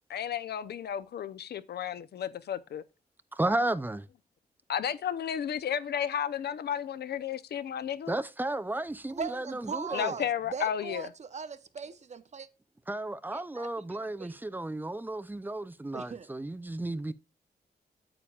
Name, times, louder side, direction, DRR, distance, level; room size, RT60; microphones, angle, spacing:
voice 1, 0.1-2.8 4.7-8.2 9.9-11.1, left 9 dB, 85° left, 0.7 m, -33 dB
voice 2, 3.3-4.1 8.1-10.1 12.9-17.1, right 2 dB, 10° right, 0.5 m, -33 dB
voice 3, 9.1-12.5 13.3-14.4 15.9-16.3, right 5 dB, 45° right, 0.8 m, -40 dB
8.8 x 8.7 x 2.4 m
wide cardioid pair, 145°, 17 cm